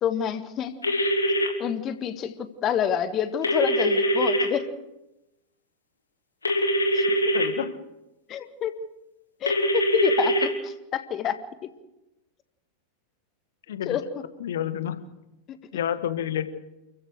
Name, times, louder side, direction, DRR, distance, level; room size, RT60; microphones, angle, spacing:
voice 1, 0.0-0.8 1.6-4.6 6.9-7.0 8.3-8.7 9.4-11.4 13.9-14.2 15.5-15.6, left 9 dB, 30° left, 10 dB, 1.8 m, -28 dB
sound 1, 0.8-1.5 3.4-4.5 6.4-7.5 9.5-10.5, equal, 75° left, 3.1 m, -23 dB
voice 2, 7.3-7.7 13.7-14.0 14.4-15.0 15.7-16.5, left 10 dB, 60° left, 11 dB, 1.7 m, -29 dB
29.5 x 15.0 x 6.6 m, 0.96 s
figure-of-eight pair, 90°, 0 cm